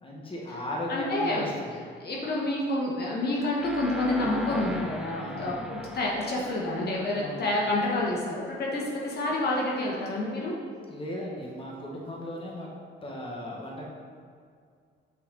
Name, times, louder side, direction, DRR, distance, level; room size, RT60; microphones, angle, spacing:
voice 1, 0.0-1.7 5.2-5.7 7.1-7.5 10.9-12.7 13.0-13.9, left 1 dB, 25° left, -3 dB, 1.4 m, -37 dB
voice 2, 0.9-1.5 2.0-10.5, left 1 dB, 55° left, -4 dB, 1.3 m, -28 dB
sound 1, 3.6-8.5, left 1 dB, ahead, 0.6 m, -41 dB
sound 2, 4.4-12.3, left 6 dB, 85° left, 1.0 m, -50 dB
6.4 x 5.5 x 3.9 m, 2.1 s
cardioid pair, 90°, 20 cm